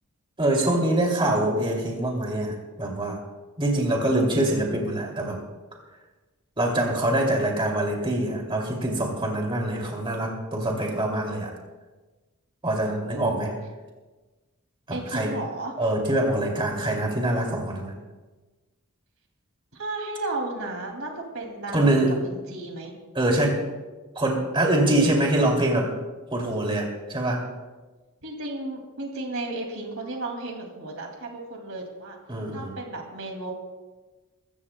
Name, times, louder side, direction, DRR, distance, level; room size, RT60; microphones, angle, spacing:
voice 1, 0.4-3.2 3.6-5.4 6.6-11.5 12.6-13.5 14.9-15.3 15.8-17.9 21.7-22.2 23.1-23.7 24.2-25.9 26.3-27.4 32.3-32.7, right 1 dB, 25° right, 0 dB, 2.5 m, -24 dB
voice 2, 12.8-13.5 14.9-15.7 19.7-22.9 28.2-32.2 32.5-33.5, right 2 dB, 70° right, 2 dB, 2.4 m, -34 dB
23.5 x 14.0 x 2.2 m, 1.2 s
head